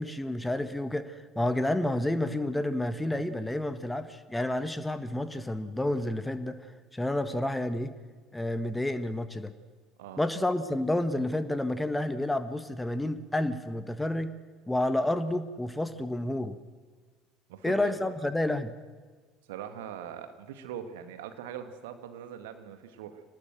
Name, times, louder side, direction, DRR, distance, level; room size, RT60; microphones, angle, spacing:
voice 1, 0.0-6.6 6.9-7.9 8.3-9.5 10.2-14.4 14.7-16.6 17.6-18.7, left 1 dB, 10° left, 11 dB, 1.5 m, -30 dB
voice 2, 17.5-18.3 19.5-23.2, right 9 dB, 65° right, 8 dB, 2.0 m, -42 dB
24.0 x 19.5 x 7.8 m, 1.5 s
figure-of-eight pair, 60°, 0 cm